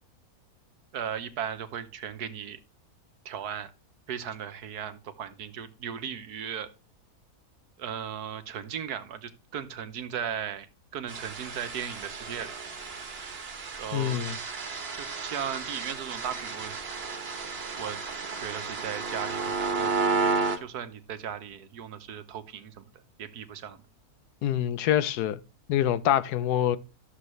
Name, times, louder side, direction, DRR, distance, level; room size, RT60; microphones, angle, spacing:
voice 1, 0.9-2.6 3.2-3.7 4.1-6.7 7.8-10.7 10.9-12.5 13.8-14.2 14.9-16.8 17.8-18.0 18.4-22.8 23.2-23.8, right 8 dB, 80° right, 1.5 m, -37 dB
sound 1, 11.1-20.6, right 4 dB, 40° right, 1.3 m, -32 dB
voice 2, 13.9-14.4 24.4-25.4 25.7-26.8, left 11 dB, 80° left, 1.2 m, -25 dB
13.0 x 7.2 x 3.2 m
omnidirectional pair, 1.7 m